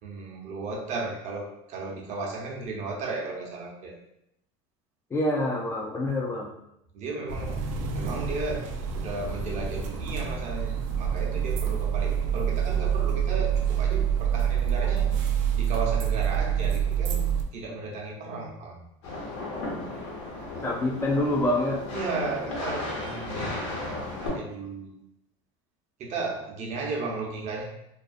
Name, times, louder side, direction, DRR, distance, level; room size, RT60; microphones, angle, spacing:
voice 1, 0.0-4.0 6.9-7.6 7.9-8.7 8.9-15.1 15.6-18.8 21.9-24.9 26.0-27.6, right 3 dB, 50° right, -1 dB, 0.7 m, -35 dB
voice 2, 5.1-6.5 20.6-21.8, left 1 dB, 15° left, -1 dB, 0.4 m, -26 dB
sound 1, 7.3-17.4, right 8 dB, 80° right, 0.4 m, -27 dB
sound 2, 19.0-24.3, left 2 dB, 75° left, 1.0 m, -35 dB
2.4 x 2.3 x 2.4 m, 0.81 s
supercardioid pair, 110°, 16 cm